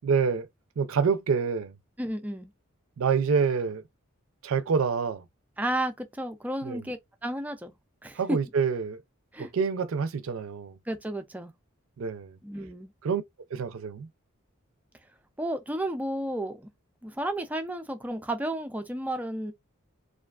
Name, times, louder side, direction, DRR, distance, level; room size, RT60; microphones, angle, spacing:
voice 1, 0.0-0.5 0.8-1.7 3.0-3.8 4.4-5.2 6.6-6.8 8.2-9.0 9.4-10.8 12.0-12.4 13.0-13.2 13.5-14.1, right 5 dB, 75° right, 0.4 m, -27 dB
voice 2, 2.0-2.5 5.6-7.7 8.0-8.4 9.3-9.5 10.9-11.5 12.4-12.9 15.4-16.7 17.0-19.5, right 1 dB, 5° right, 0.3 m, -32 dB
2.4 x 2.3 x 2.3 m
head